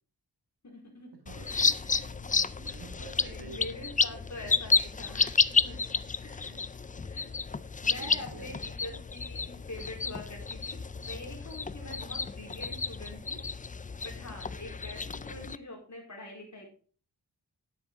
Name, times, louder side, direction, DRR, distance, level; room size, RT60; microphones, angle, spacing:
voice 1, 0.6-1.1 1.3-2.1 3.2-6.6 6.9-13.4 14.0-16.7, left 1 dB, 45° left, -1 dB, 4.1 m, -45 dB
sound 1, 1.3-15.6, left 4 dB, 20° left, 0.4 m, -31 dB
voice 2, 1.3-3.6 4.2-4.3 6.4-6.6 8.0-8.6, right 4 dB, 75° right, 5 dB, 2.0 m, -49 dB
9.6 x 8.2 x 3.6 m, 0.41 s
cardioid pair, 50°, 39 cm